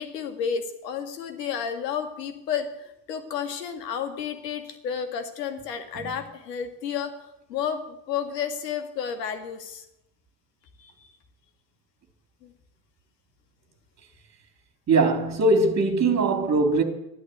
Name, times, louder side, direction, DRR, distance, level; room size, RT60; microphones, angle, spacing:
voice 1, 0.0-7.1 7.5-9.9 10.8-11.1 12.4-12.5, left 7 dB, 85° left, 2.2 m, -31 dB
voice 2, 14.9-16.8, right 3 dB, 35° right, 3.5 m, -21 dB
13.5 x 11.5 x 8.1 m
hypercardioid pair, 65°, 47 cm